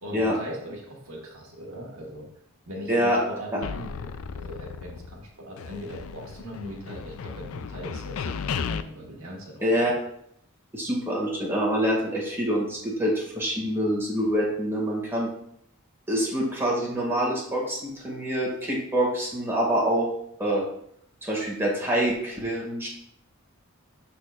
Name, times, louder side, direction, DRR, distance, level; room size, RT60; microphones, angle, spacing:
voice 1, 0.0-2.3 2.7-9.9, equal, 75° right, -2 dB, 1.6 m, -40 dB
voice 2, 2.9-3.2 9.6-9.9 10.7-15.3 16.1-20.1 20.4-20.6 21.2-22.9, equal, 10° right, -4 dB, 2.0 m, -26 dB
sound 1, 3.6-5.3 5.6-8.8, left 6 dB, 70° left, 0.4 m, -35 dB
12.5 x 4.2 x 2.4 m, 0.70 s
head